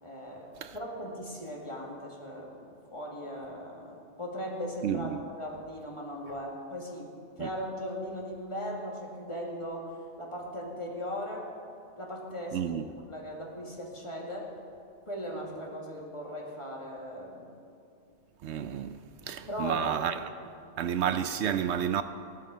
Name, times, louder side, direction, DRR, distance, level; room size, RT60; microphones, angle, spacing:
voice 1, 0.0-2.6 2.9-11.5 12.0-12.7 13.1-14.5 15.1-17.5 19.2-19.9 20.8-21.0, equal, 25° left, 2.2 m, -38 dB
voice 2, 4.8-5.2 7.4-7.5 12.5-12.9 18.4-19.0 19.2-20.2 20.8-22.0, right 9 dB, 75° right, 0.8 m, -30 dB
15.5 x 12.5 x 5.0 m
omnidirectional pair, 1.2 m